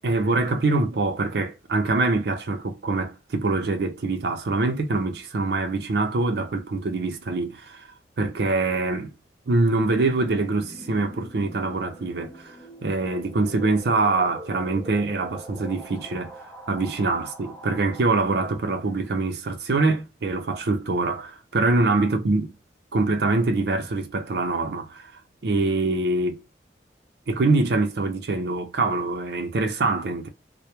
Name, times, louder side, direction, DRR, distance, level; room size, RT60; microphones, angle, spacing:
voice 1, 0.0-7.9 8.2-9.1 9.5-12.5 12.8-16.3 16.7-22.5 22.9-25.1 25.4-26.4 27.3-30.3, right 3 dB, 65° right, 0.5 m, -24 dB
sound 1, 9.7-19.2, equal, 5° left, 0.4 m, -43 dB
2.1 x 2.0 x 2.9 m
head